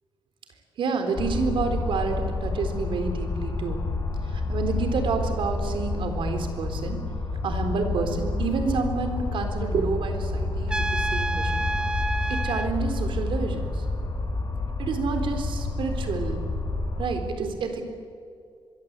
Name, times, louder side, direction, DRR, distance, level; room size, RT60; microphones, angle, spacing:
voice 1, 0.8-3.8 4.3-7.0 7.4-11.7 12.3-13.8 14.8-16.4 17.0-17.8, right 4 dB, 65° right, 6 dB, 3.8 m, -29 dB
sound 1, 1.1-17.1, left 2 dB, 45° left, 5.0 m, -29 dB
Trumpet, 10.7-12.7, right 2 dB, 10° right, 1.0 m, -29 dB
25.0 x 23.0 x 8.3 m, 2.3 s
wide cardioid pair, 165°, 9 cm